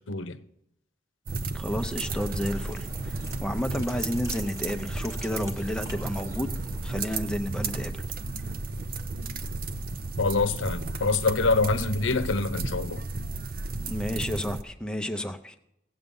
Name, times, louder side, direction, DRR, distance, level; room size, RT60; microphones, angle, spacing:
voice 1, 0.1-0.4 10.2-13.0, left 3 dB, 85° left, 0.8 m, -25 dB
sound 1, 1.3-14.6, right 3 dB, 50° right, 0.6 m, -33 dB
voice 2, 1.5-6.5 6.8-8.0 13.9-15.5, equal, 5° left, 0.6 m, -31 dB
sound 2, 2.0-7.2, equal, 15° right, 1.0 m, -45 dB
17.0 x 8.1 x 5.4 m
head